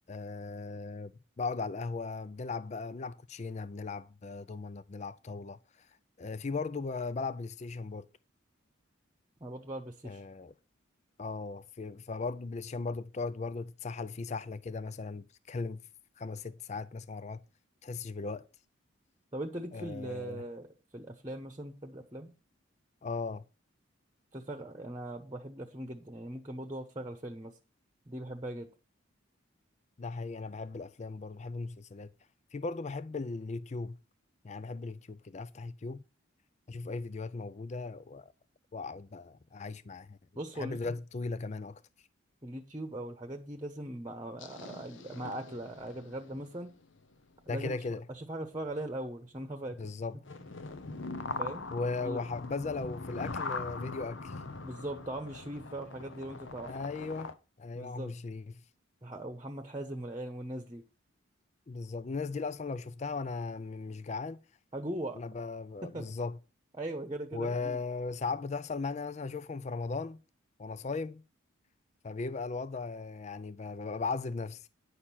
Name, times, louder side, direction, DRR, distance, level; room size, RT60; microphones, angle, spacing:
voice 1, 0.1-1.1 1.4-5.9 6.2-8.1 10.0-10.5 11.2-15.8 16.2-17.4 17.8-18.5 19.7-20.4 23.0-23.4 30.0-32.1 32.5-34.0 34.4-36.0 36.7-38.3 38.7-40.2 40.6-41.8 47.5-48.0 49.8-50.2 51.7-54.4 56.6-57.3 57.6-58.4 61.7-64.4 65.2-66.4 67.3-70.2 70.6-71.2 72.0-74.7, left 4 dB, 35° left, 0.4 m, -37 dB
voice 2, 9.4-10.2 19.3-20.7 20.9-22.3 24.3-27.5 28.1-28.7 40.3-41.0 42.4-46.7 47.5-47.8 48.1-49.9 50.4-50.5 51.4-51.7 52.0-52.2 54.6-56.7 57.7-58.1 59.0-60.8 64.7-65.2 65.8-66.0 66.8-67.8, right 1 dB, 20° right, 1.0 m, -40 dB
sound 1, 44.4-47.1 47.5-47.7 48.5-48.8 49.6-49.7 49.8-49.9 50.2-57.3, left 3 dB, 70° left, 0.9 m, -42 dB
9.9 x 6.6 x 5.7 m
head